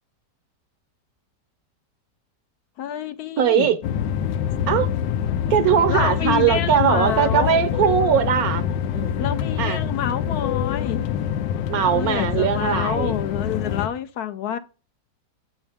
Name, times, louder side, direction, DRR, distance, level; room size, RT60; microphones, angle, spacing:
voice 1, 2.8-3.7 5.9-7.6 9.2-11.0 11.9-14.6, left 9 dB, 70° left, 1.0 m, -28 dB
voice 2, 3.4-3.8 4.7-4.9 5.5-8.7 8.9-9.3 9.6-9.8 11.7-13.2, right 8 dB, 65° right, 1.1 m, -20 dB
sound 1, 3.8-13.9, left 9 dB, 90° left, 1.3 m, -25 dB
7.8 x 4.5 x 3.4 m
omnidirectional pair, 1.8 m